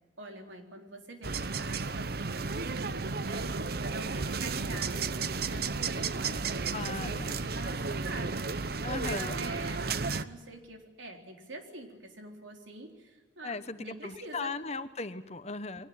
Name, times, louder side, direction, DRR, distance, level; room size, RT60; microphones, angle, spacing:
voice 1, 0.2-3.0 3.2-6.5 6.9-14.5, right 2 dB, 85° right, 4 dB, 3.9 m, -45 dB
sound 1, 1.2-10.2, right 4 dB, 55° right, 0.8 m, -33 dB
voice 2, 6.7-7.4 8.8-9.4 13.4-15.9, left 3 dB, 35° left, 12 dB, 1.0 m, -37 dB
23.5 x 19.0 x 9.4 m, 1.3 s
head